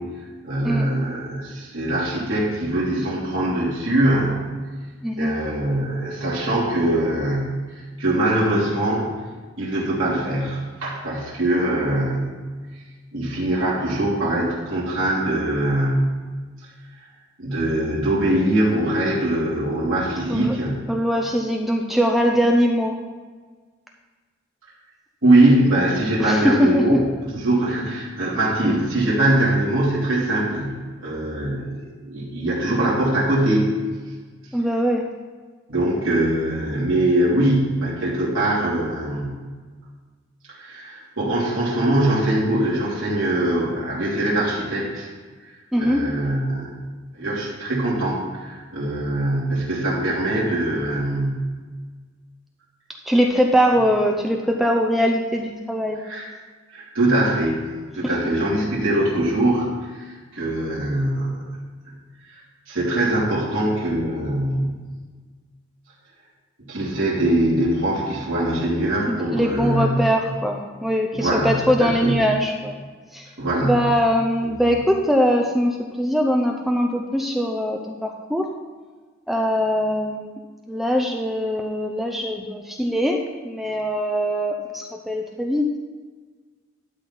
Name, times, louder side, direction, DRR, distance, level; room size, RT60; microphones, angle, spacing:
voice 1, 0.4-4.5 5.2-9.2 9.6-12.4 13.1-16.1 17.4-20.8 25.2-26.9 27.2-33.7 35.7-39.4 40.5-45.1 45.8-46.7 47.1-51.5 56.0-56.3 56.7-57.6 57.9-61.4 61.9-62.0 62.3-62.4 62.7-64.9 66.7-70.0 71.1-72.3 73.4-73.9 74.4-74.6, right 1 dB, 90° right, -6 dB, 3.0 m, -22 dB
voice 2, 5.0-5.4 20.3-20.6 20.9-23.0 26.2-26.8 34.5-35.1 45.7-46.0 53.1-56.0 69.1-72.7 73.1-73.3 73.6-78.5 79.3-80.4 80.7-85.7, equal, ahead, 1 dB, 0.6 m, -22 dB
12.5 x 4.2 x 7.3 m, 1.4 s
head